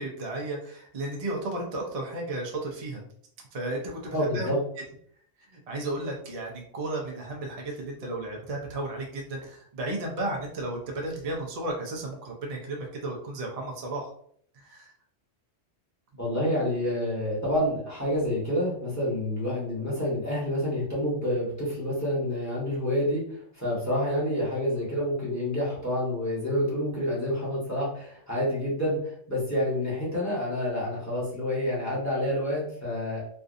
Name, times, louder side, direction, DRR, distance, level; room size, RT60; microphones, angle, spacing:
voice 1, 0.0-3.1 3.5-4.5 5.5-14.1 14.6-14.9, right 2 dB, 40° right, 0 dB, 0.5 m, -34 dB
voice 2, 4.1-4.6 16.2-23.2 23.6-33.2, left 1 dB, 15° left, -7 dB, 1.2 m, -28 dB
3.2 x 2.6 x 2.5 m, 0.62 s
omnidirectional pair, 1.4 m